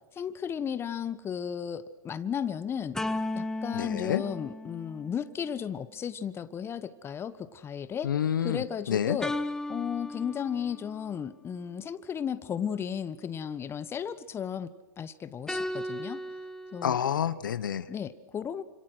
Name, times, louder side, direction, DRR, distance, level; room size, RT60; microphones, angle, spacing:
voice 1, 0.1-3.0 3.3-8.1 8.4-9.3 9.7-14.7 15.0-16.2 16.7-16.9 17.9-18.6, left 8 dB, 25° left, 14 dB, 1.3 m, -34 dB
sound 1, 2.9-5.5 9.2-11.0 15.5-16.9, left 1 dB, 5° left, 1.1 m, -35 dB
voice 2, 3.7-4.2 8.0-9.2 16.8-17.9, left 9 dB, 80° left, 15 dB, 1.1 m, -28 dB
29.0 x 26.5 x 6.3 m, 1.0 s
hypercardioid pair, 105°, 11 cm